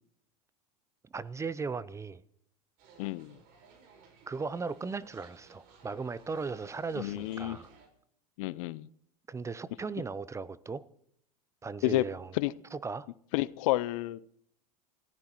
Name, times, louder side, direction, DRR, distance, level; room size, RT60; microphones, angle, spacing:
voice 1, 1.1-2.2 4.3-7.7 9.3-10.8 11.6-12.4 12.7-13.1, right 4 dB, 15° right, 0.6 m, -37 dB
sound 1, 2.8-7.9, right 5 dB, 50° right, 4.6 m, -58 dB
voice 2, 3.0-3.3 7.0-7.6 8.4-8.9 11.8-12.0 12.4-12.5 13.3-14.2, left 19 dB, 60° left, 0.6 m, -30 dB
29.5 x 15.0 x 3.0 m
hypercardioid pair, 90°, 20 cm